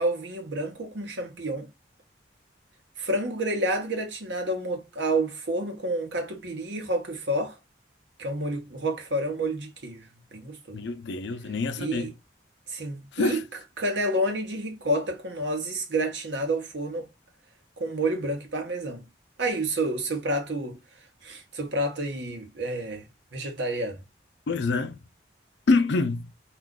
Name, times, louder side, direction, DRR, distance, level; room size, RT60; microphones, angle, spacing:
voice 1, 0.0-1.7 3.0-7.6 8.2-10.8 11.8-12.1 12.7-13.4 13.8-17.1 17.8-19.1 19.4-20.8 21.2-23.1 23.3-24.0, right 1 dB, 80° right, 0.8 m, -29 dB
voice 2, 10.7-12.1 13.1-13.4 24.5-25.0 25.7-26.3, left 3 dB, 70° left, 0.4 m, -26 dB
2.4 x 2.3 x 3.5 m
head